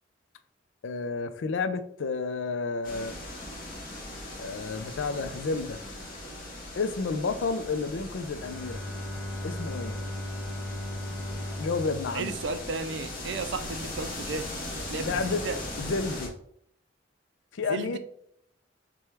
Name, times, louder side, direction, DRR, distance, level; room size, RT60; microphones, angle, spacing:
voice 1, 0.8-3.2 4.4-5.8 6.8-8.8 9.4-10.0 11.6-12.4 15.0-15.4 15.8-16.3 17.5-18.0, left 4 dB, 85° left, 0.4 m, -31 dB
sound 1, 2.8-16.3, left 1 dB, 50° left, 1.3 m, -39 dB
Bowed string instrument, 8.2-13.2, left 1 dB, 15° left, 0.9 m, -37 dB
voice 2, 12.1-14.5 14.9-15.6 17.7-18.0, right 4 dB, 65° right, 0.4 m, -34 dB
6.0 x 2.3 x 3.4 m
head